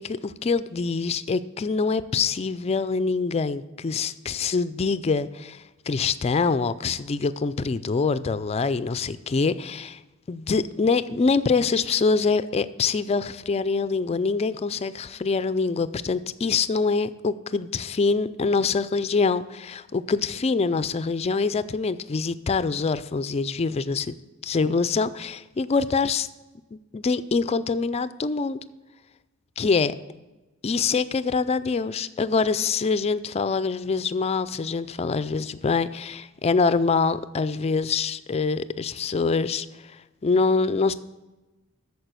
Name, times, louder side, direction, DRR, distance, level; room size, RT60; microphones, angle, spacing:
voice 1, 0.0-10.0 10.3-24.1 24.4-26.3 26.7-28.6 29.6-29.9 30.6-39.7 40.2-40.9, left 4 dB, 30° left, 14 dB, 0.3 m, -25 dB
8.9 x 6.8 x 6.7 m, 1.1 s
head